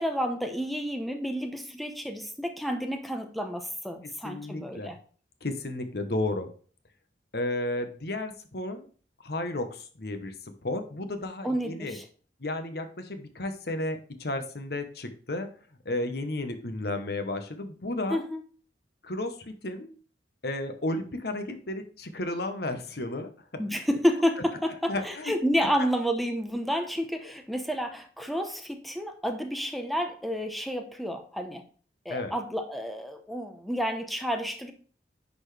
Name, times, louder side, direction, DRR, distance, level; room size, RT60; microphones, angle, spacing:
voice 1, 0.0-5.0 11.4-12.0 18.1-18.4 23.6-31.6 32.0-34.7, equal, ahead, 5 dB, 0.8 m, -30 dB
voice 2, 4.2-4.9 5.4-6.5 7.3-8.9 9.2-10.3 10.6-12.0 12.4-15.5 15.8-18.2 19.0-20.0 20.4-23.6 24.9-25.3 27.2-27.3 32.1-32.3, left 2 dB, 60° left, 8 dB, 1.1 m, -33 dB
10.0 x 4.4 x 3.3 m, 0.42 s
head